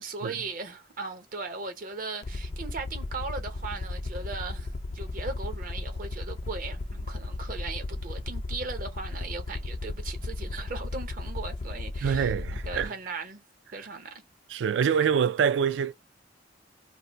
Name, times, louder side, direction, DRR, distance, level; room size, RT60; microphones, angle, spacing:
voice 1, 0.0-13.4 13.7-14.2, right 4 dB, 45° right, 0.7 m, -38 dB
Aircraft, 2.2-12.9, left 2 dB, 35° left, 0.4 m, -35 dB
voice 2, 12.0-12.9 14.5-15.9, right 7 dB, 75° right, 0.3 m, -25 dB
2.5 x 2.0 x 3.9 m
head